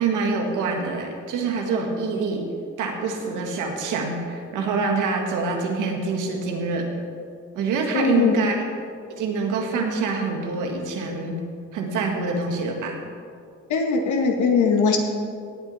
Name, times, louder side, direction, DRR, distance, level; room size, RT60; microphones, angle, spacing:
voice 1, 0.0-2.4 2.8-6.9 7.6-8.6 9.1-11.4 11.7-13.0, right 4 dB, 90° right, 2 dB, 1.9 m, -25 dB
voice 2, 7.9-8.3 13.7-15.0, left 5 dB, 75° left, 3 dB, 1.8 m, -20 dB
17.5 x 8.7 x 4.3 m, 2.3 s
cardioid pair, 90°, 30 cm